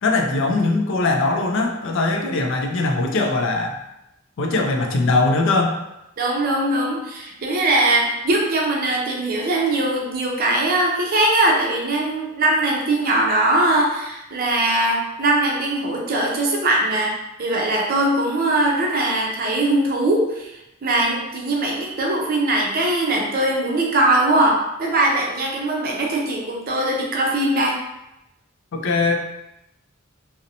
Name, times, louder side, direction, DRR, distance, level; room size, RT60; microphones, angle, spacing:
voice 1, 0.0-3.8 4.4-5.8 28.7-29.2, left 3 dB, 65° left, 2 dB, 0.4 m, -20 dB
voice 2, 6.2-17.1 17.4-27.8, right 1 dB, 45° right, -1 dB, 0.5 m, -21 dB
2.6 x 2.0 x 2.7 m, 0.89 s
head